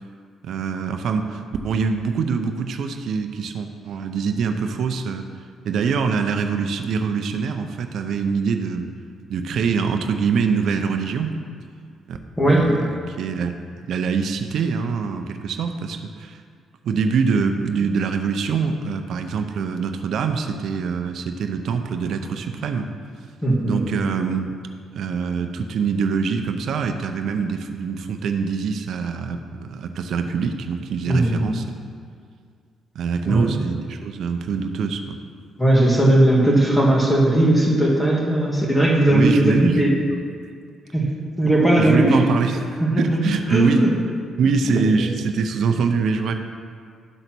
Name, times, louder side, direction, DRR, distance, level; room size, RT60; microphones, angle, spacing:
voice 1, 0.4-5.2 5.6-8.9 9.3-11.4 12.1-12.2 12.5-13.5 13.9-16.4 16.8-22.9 23.6-24.5 25.0-31.8 32.9-35.2 39.1-39.8 40.1-40.2 41.8-42.7 43.0-43.9 44.4-46.3, right 5 dB, 70° right, 6 dB, 0.6 m, -24 dB
voice 2, 12.4-12.7 23.4-24.0 31.1-31.5 33.2-33.6 35.6-39.9 40.9-41.1 41.4-42.2 42.8-43.2 43.5-43.9 44.7-45.1, right 1 dB, 10° left, -2 dB, 1.9 m, -18 dB
11.0 x 4.0 x 6.0 m, 2.2 s
cardioid pair, 90°, 0 cm